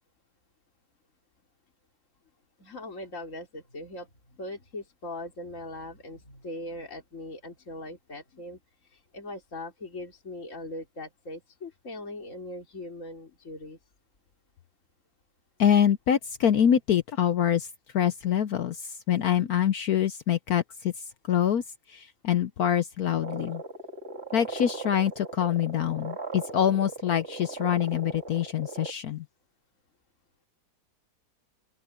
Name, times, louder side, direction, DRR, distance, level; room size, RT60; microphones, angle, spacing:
voice 1, 2.6-4.1 4.4-8.6 8.9-13.8, left 1 dB, 40° left, 3.6 m, -40 dB
voice 2, 15.6-17.7 17.9-23.6 24.3-29.2, left 9 dB, 65° left, 1.1 m, -25 dB
sound 1, 23.2-28.9, right 4 dB, 35° right, 2.9 m, -39 dB
open air
omnidirectional pair, 2.0 m